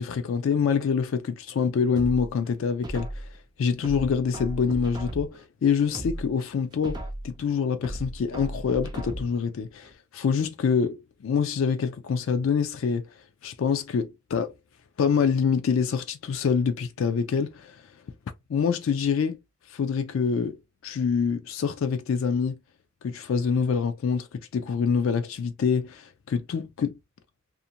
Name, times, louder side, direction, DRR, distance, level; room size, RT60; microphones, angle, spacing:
voice 1, 0.0-3.2 3.6-7.0 7.2-13.1 13.4-14.5 15.0-17.8 18.5-19.4 19.7-20.6 20.8-22.6 23.0-26.9, left 6 dB, 75° left, 0.3 m, -26 dB
sound 1, 1.9-3.4 3.8-5.4 5.8-7.4 7.8-9.4 9.8-9.9, right 1 dB, 20° right, 0.3 m, -36 dB
2.5 x 2.1 x 2.7 m
head